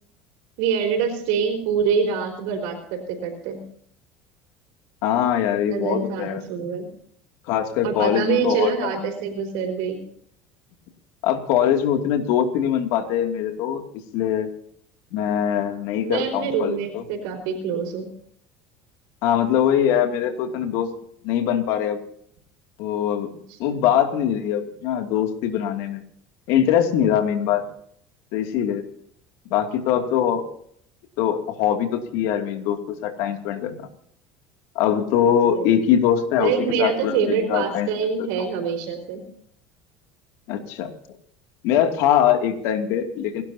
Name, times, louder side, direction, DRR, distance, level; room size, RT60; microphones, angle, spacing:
voice 1, 0.6-3.6 5.7-6.9 7.8-10.0 16.0-18.1 23.5-23.8 35.5-35.7 36.4-39.2, right 6 dB, 80° right, 2 dB, 4.8 m, -25 dB
voice 2, 5.0-6.4 7.5-9.0 11.2-13.8 14.1-14.5 15.1-17.0 19.2-20.9 21.2-22.0 22.8-23.3 23.6-26.0 26.5-27.6 28.3-28.8 29.5-30.5 31.2-33.8 34.7-37.9 38.2-38.3 40.5-40.9 41.6-43.4, left 9 dB, 75° left, 5 dB, 2.6 m, -22 dB
29.5 x 12.0 x 2.8 m, 0.65 s
cardioid pair, 125°, 6 cm